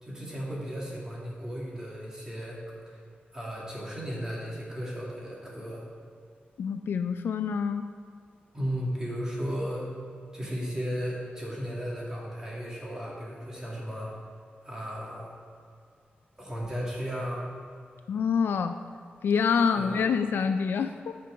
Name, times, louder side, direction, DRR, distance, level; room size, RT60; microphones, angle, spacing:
voice 1, 0.0-2.6 2.9-3.0 3.3-5.8 8.5-9.9 10.3-14.1 14.6-15.3 16.4-17.4 19.7-20.0, equal, 20° right, -5 dB, 2.1 m, -35 dB
voice 2, 6.6-7.9 18.1-18.8 19.2-21.2, left 6 dB, 90° left, 8 dB, 0.3 m, -26 dB
10.0 x 4.5 x 6.3 m, 2.4 s
wide cardioid pair, 140°, 4 cm